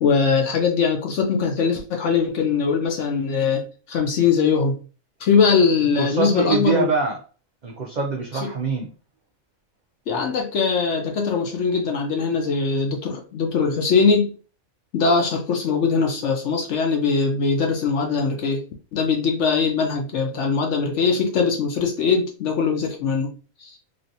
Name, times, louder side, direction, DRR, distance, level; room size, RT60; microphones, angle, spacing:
voice 1, 0.0-4.8 5.2-6.9 8.4-8.5 10.1-14.3 14.9-18.6 18.9-23.3 23.6-23.7, left 5 dB, 65° left, 0.9 m, -21 dB
voice 2, 6.0-7.2 7.6-8.9, right 5 dB, 85° right, 0.4 m, -24 dB
3.1 x 2.5 x 2.6 m
omnidirectional pair, 1.5 m